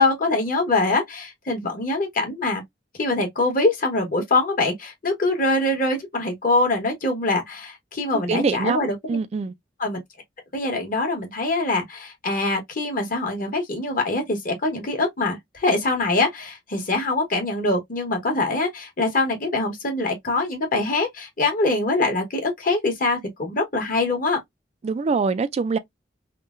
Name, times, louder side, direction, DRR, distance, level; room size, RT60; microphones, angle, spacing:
voice 1, 0.0-2.6 3.0-8.9 9.8-10.0 10.5-24.4, left 2 dB, 50° left, 1.4 m, -23 dB
voice 2, 8.1-9.5 24.8-25.8, right 4 dB, 35° right, 0.3 m, -24 dB
3.6 x 2.2 x 2.5 m
head